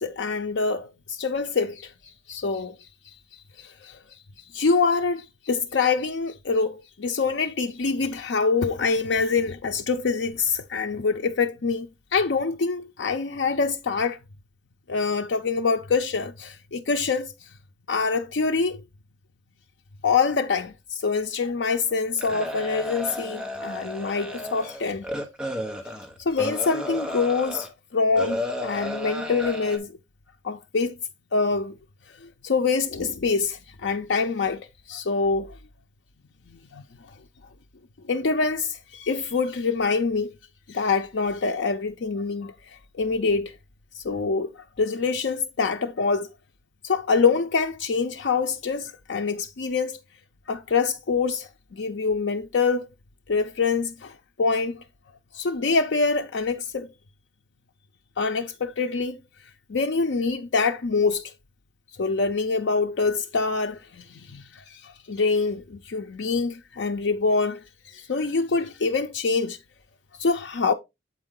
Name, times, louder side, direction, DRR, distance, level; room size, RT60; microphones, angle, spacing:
voice 1, 0.0-2.8 3.6-4.0 4.5-11.9 12.1-14.2 14.9-17.3 17.9-18.8 20.0-25.1 26.2-29.9 30.4-31.0 31.3-31.7 32.2-35.6 36.5-36.8 38.1-40.3 40.7-43.5 43.9-46.3 46.8-50.0 50.5-52.9 53.3-54.8 55.3-56.9 58.2-59.2 59.7-61.3 62.0-69.6 70.2-70.7, left 4 dB, 85° left, 0.6 m, -25 dB
sound 1, 22.2-27.7 28.2-29.8, left 1 dB, 5° right, 1.3 m, -32 dB
8.0 x 4.4 x 3.7 m
head